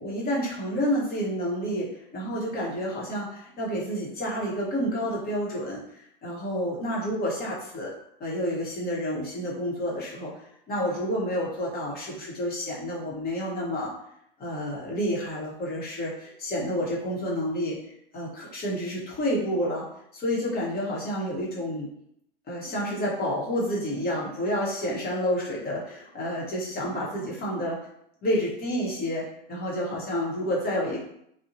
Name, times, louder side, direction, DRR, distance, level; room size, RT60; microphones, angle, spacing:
voice 1, 0.0-7.9 8.2-13.9 14.4-17.8 18.1-19.8 20.1-21.9 22.5-27.8 28.2-31.0, equal, 35° left, -4 dB, 0.9 m, -29 dB
2.6 x 2.1 x 2.6 m, 0.75 s
hypercardioid pair, 100°, 29 cm